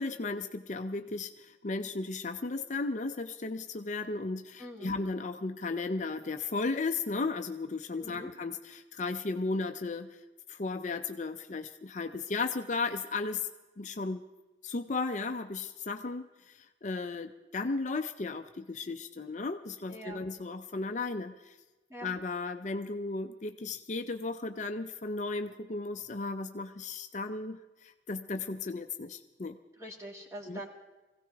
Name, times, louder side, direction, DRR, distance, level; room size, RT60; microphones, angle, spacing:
voice 1, 0.0-10.2 10.5-13.5 13.8-14.2 14.6-21.6 22.0-29.6 30.5-30.6, left 3 dB, 40° left, 7 dB, 0.5 m, -35 dB
voice 2, 4.6-4.9 8.0-8.3 19.9-20.2 21.9-22.1 29.8-30.7, equal, 15° right, -1 dB, 2.1 m, -44 dB
23.0 x 16.5 x 3.5 m, 1.1 s
head